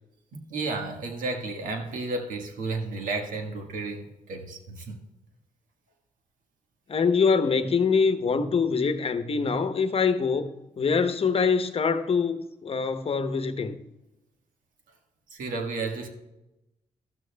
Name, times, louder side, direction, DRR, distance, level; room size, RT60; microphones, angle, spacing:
voice 1, 0.3-5.0 15.3-16.1, right 3 dB, 80° right, 1.5 m, -32 dB
voice 2, 6.9-10.5 10.8-13.8, left 5 dB, 45° left, 0.9 m, -24 dB
13.5 x 12.5 x 2.2 m
cardioid pair, 60°, 14 cm